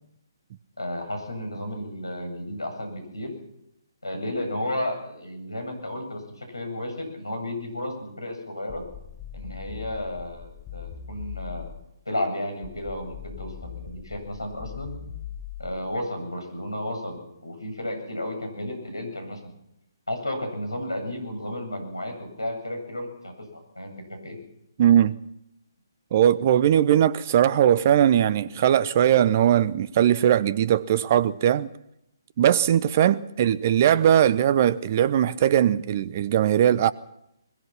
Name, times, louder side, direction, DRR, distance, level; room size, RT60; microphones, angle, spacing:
voice 1, 0.8-3.3 4.0-8.8 9.3-11.7 12.1-15.0 15.6-19.5 20.1-24.4, left 1 dB, 80° left, 8.0 m, -33 dB
sound 1, 8.7-11.9 12.6-15.9, left 9 dB, 20° left, 1.0 m, -40 dB
voice 2, 24.8-25.1 26.1-31.7 32.4-36.9, right 10 dB, 35° right, 0.9 m, -20 dB
22.0 x 21.5 x 5.9 m
figure-of-eight pair, 135°, 2 cm